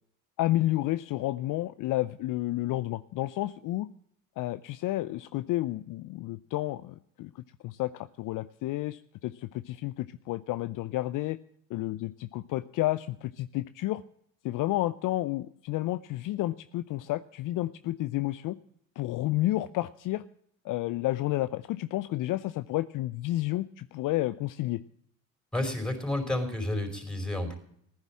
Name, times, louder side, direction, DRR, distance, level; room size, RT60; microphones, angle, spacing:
voice 1, 0.4-3.9 4.4-11.4 11.7-14.0 14.4-18.6 19.0-20.2 20.6-24.8, left 16 dB, 55° left, 14 dB, 0.6 m, -31 dB
voice 2, 25.5-27.5, left 1 dB, ahead, 3 dB, 5.1 m, -30 dB
15.0 x 10.5 x 7.5 m, 0.69 s
hypercardioid pair, 70°, 39 cm